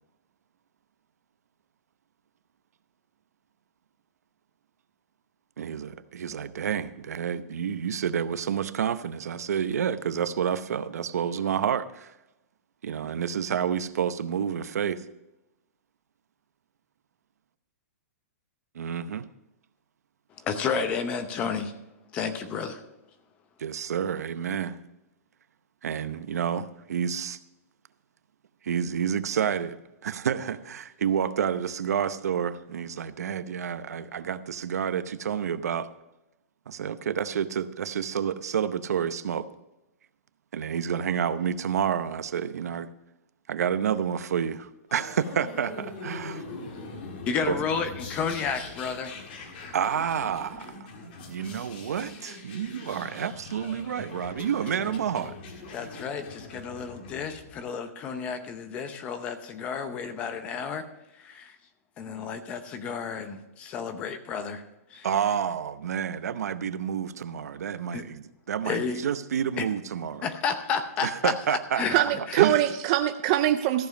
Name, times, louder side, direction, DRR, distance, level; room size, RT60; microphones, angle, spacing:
voice 1, 5.6-12.1 12.8-15.0 18.7-19.2 23.6-24.8 25.8-27.4 28.6-29.8 30.0-35.9 36.7-39.5 40.5-42.9 43.5-46.4 47.5-47.6 49.7-50.9 51.3-55.4 65.0-70.3 71.0-72.1 72.4-72.6, right 8 dB, 85° right, 0.8 m, -29 dB
voice 2, 20.4-21.7 22.1-22.8 47.3-49.1 54.8-54.9 55.7-60.8 61.2-61.5 62.0-64.6 64.9-65.1 67.9-68.0 68.7-69.0 69.6-69.7 70.2-72.0 72.3-72.4, left 6 dB, 15° left, 0.7 m, -31 dB
sound 1, 44.9-57.6, left 3 dB, 40° left, 1.8 m, -42 dB
voice 3, 71.9-73.9, right 13 dB, 25° right, 0.4 m, -23 dB
14.0 x 7.1 x 5.2 m
hypercardioid pair, 175°, 8 cm